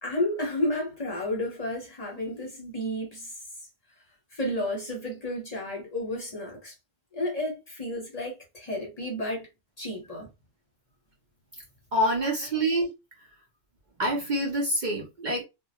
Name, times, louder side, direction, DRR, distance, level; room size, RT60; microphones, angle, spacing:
voice 1, 0.0-3.3 4.3-6.7 7.1-9.5 9.8-10.3 12.2-12.5, left 1 dB, 40° left, 0.8 m, -32 dB
voice 2, 11.9-12.9 14.0-15.4, right 1 dB, 50° right, 0.7 m, -26 dB
2.2 x 2.0 x 2.8 m
omnidirectional pair, 1.2 m